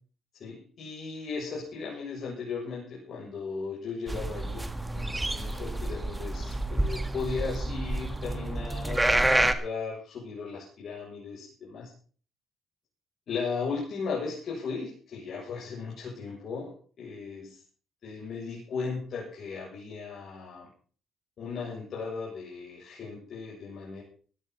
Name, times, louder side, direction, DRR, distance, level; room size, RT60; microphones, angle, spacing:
voice 1, 0.4-11.9 13.3-17.6 18.0-20.7 21.4-24.0, left 5 dB, 60° left, -4 dB, 7.5 m, -36 dB
sound 1, 4.1-9.5, right 2 dB, 15° right, 1.7 m, -28 dB
17.5 x 13.0 x 4.2 m, 0.42 s
cardioid pair, 90°, 0 cm